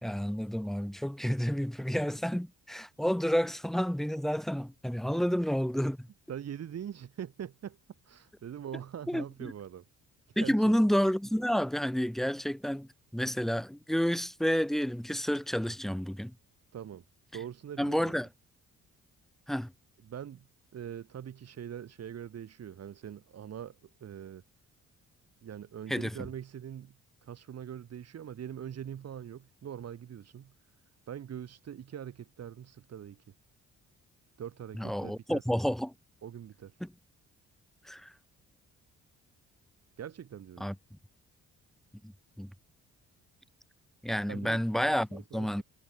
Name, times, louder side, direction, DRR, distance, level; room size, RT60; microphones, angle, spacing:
voice 1, 0.0-6.1 9.1-9.5 10.4-16.3 17.8-18.3 19.5-19.7 25.9-26.2 34.7-35.9 36.8-36.9 37.8-38.1 40.6-40.8 42.0-42.5 44.0-45.6, equal, ahead, 0.8 m, -30 dB
voice 2, 6.3-7.8 8.0-9.8 10.3-10.7 16.7-17.0 17.3-18.1 20.1-20.5 20.7-24.4 25.4-26.9 27.2-30.5 31.1-33.2 34.4-35.4 36.2-36.8 40.0-40.7 44.2-45.6, right 9 dB, 55° right, 2.7 m, -43 dB
cardioid pair, 90°, 30 cm